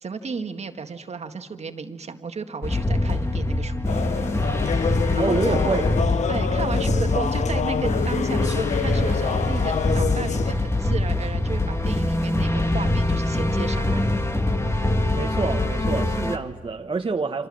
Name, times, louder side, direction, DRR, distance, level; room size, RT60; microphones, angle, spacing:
voice 1, 0.0-3.9 5.2-5.8 6.3-14.2, right 5 dB, 55° right, 1.8 m, -33 dB
sound 1, 2.6-16.4, left 2 dB, 20° left, 2.1 m, -24 dB
sound 2, 3.9-10.5, left 7 dB, 60° left, 0.7 m, -27 dB
voice 2, 5.2-5.8 15.2-17.5, right 4 dB, 40° right, 1.3 m, -27 dB
29.0 x 26.0 x 7.6 m
cardioid pair, 60°, 13 cm